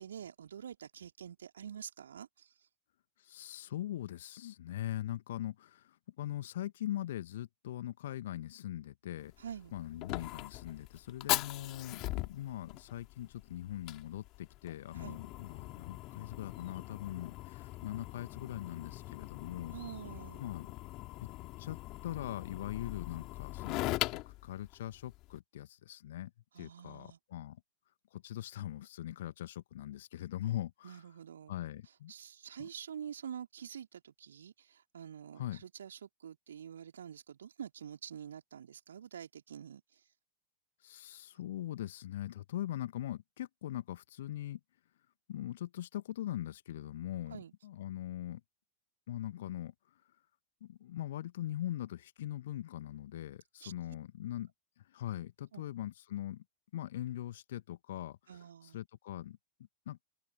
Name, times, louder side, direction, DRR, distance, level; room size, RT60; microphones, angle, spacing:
voice 1, 0.0-2.7 9.4-9.7 14.9-15.2 19.7-20.4 26.5-27.2 30.8-31.5 32.1-40.0 47.3-47.5 53.6-53.7 55.5-55.7 58.3-58.8, right 8 dB, 65° right, 3.0 m, -47 dB
voice 2, 3.2-9.3 9.7-19.7 20.4-20.7 21.2-21.3 21.6-21.8 22.0-26.3 26.6-27.6 28.1-31.0 31.5-32.1 32.6-32.7 35.3-35.6 40.8-44.6 45.3-48.4 49.1-49.7 50.6-54.5 54.9-56.4 56.7-58.2 58.6-59.4 59.8-60.0, left 13 dB, 60° left, 1.5 m, -41 dB
Fire, 9.2-25.4, left 20 dB, 40° left, 3.5 m, -41 dB
open air
figure-of-eight pair, 90°, 0 cm